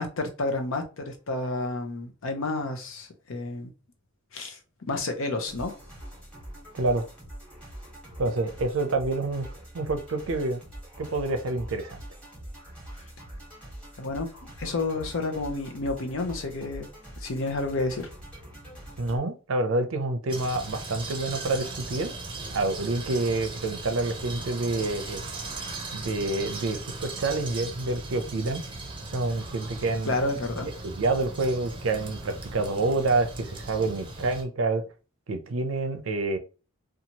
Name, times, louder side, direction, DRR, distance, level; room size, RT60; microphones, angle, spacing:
voice 1, 0.0-3.7 4.3-4.6 4.9-5.7 14.0-14.3 14.6-16.9 17.2-18.1 30.0-30.7, left 2 dB, 75° left, 0.7 m, -30 dB
sound 1, 5.5-19.2, right 1 dB, 5° left, 1.3 m, -44 dB
voice 2, 6.7-7.0 8.2-9.5 9.7-10.6 11.0-12.0 19.0-22.1 22.5-25.2 25.9-28.6 29.1-30.2 30.8-34.8 35.3-36.4, right 2 dB, 70° right, 0.5 m, -27 dB
sound 2, 20.3-34.4, right 2 dB, 25° right, 0.6 m, -38 dB
2.7 x 2.3 x 2.8 m
head